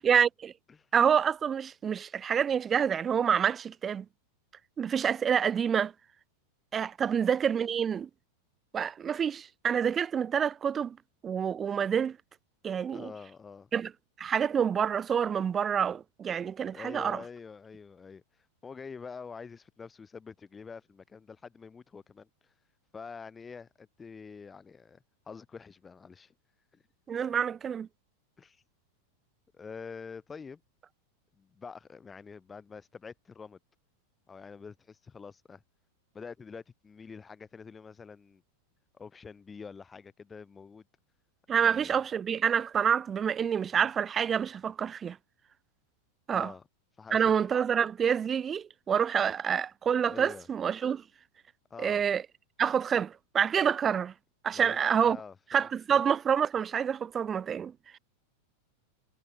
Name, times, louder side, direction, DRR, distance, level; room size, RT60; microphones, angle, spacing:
voice 1, 0.0-0.5 0.9-4.0 4.8-5.9 6.7-8.1 8.7-11.0 11.2-12.2 12.6-13.1 13.7-13.9 14.2-17.2 27.1-27.9 41.5-45.2 46.3-46.5 47.1-51.0 51.8-52.2 52.6-54.1 54.4-55.2 55.5-58.0, right 7 dB, 20° right, 1.0 m, -27 dB
voice 2, 12.8-13.7 16.7-22.5 22.9-26.3 26.7-26.8 28.4-28.6 29.5-30.6 31.4-33.6 34.3-35.6 36.1-38.4 38.9-40.8 41.6-42.0 46.3-46.6 47.0-47.5 50.1-50.5 51.7-52.0 54.5-56.0, left 5 dB, 15° left, 2.4 m, -46 dB
figure-of-eight pair, 90°, 0 cm